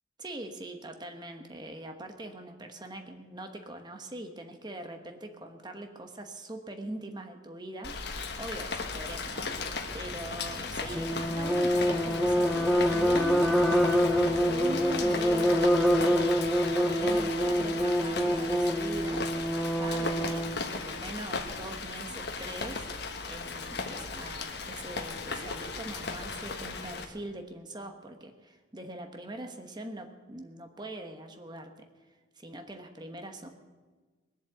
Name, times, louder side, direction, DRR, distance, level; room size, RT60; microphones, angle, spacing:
voice 1, 0.2-8.0 8.4-9.6 9.9-16.4 16.7-19.4 19.8-22.9 23.3-31.9 32.4-33.5, right 1 dB, 20° right, 5 dB, 1.1 m, -42 dB
Rain, 7.8-27.0, left 4 dB, 55° left, 1.3 m, -36 dB
sound 1, 11.0-20.6, equal, ahead, 0.6 m, -26 dB
20.5 x 7.4 x 7.8 m, 1.4 s
head